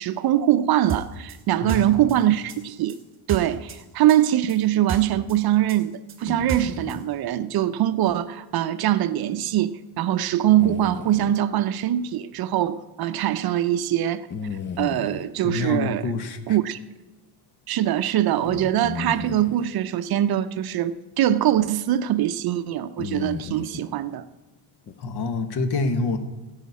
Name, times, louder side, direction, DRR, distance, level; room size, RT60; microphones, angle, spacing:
voice 1, 0.0-3.0 3.3-14.3 14.8-16.0 16.5-16.8 17.7-24.2, right 12 dB, 55° right, 0.6 m, -23 dB
sound 1, 0.9-3.8 4.1-7.0, right 7 dB, 30° right, 1.9 m, -32 dB
voice 2, 1.6-2.0 15.4-16.6 25.0-26.2, left 3 dB, 60° left, 1.3 m, -27 dB
sound 2, 6.3-7.1 10.6-11.4 14.3-15.3 18.4-19.7 21.6-21.7 23.0-23.9 24.9-25.0, left 6 dB, 25° left, 0.4 m, -34 dB
16.5 x 5.7 x 8.3 m
cardioid pair, 170°, 45 cm